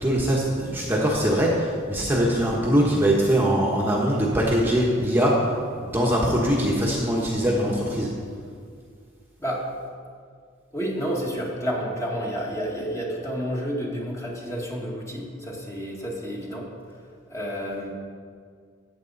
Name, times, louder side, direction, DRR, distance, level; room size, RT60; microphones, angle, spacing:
voice 1, 0.0-5.4 5.8-8.1, equal, 10° right, -4 dB, 1.3 m, -22 dB
voice 2, 10.7-16.7 17.3-17.9, equal, 15° left, -3 dB, 1.8 m, -30 dB
14.5 x 8.5 x 4.1 m, 2.1 s
head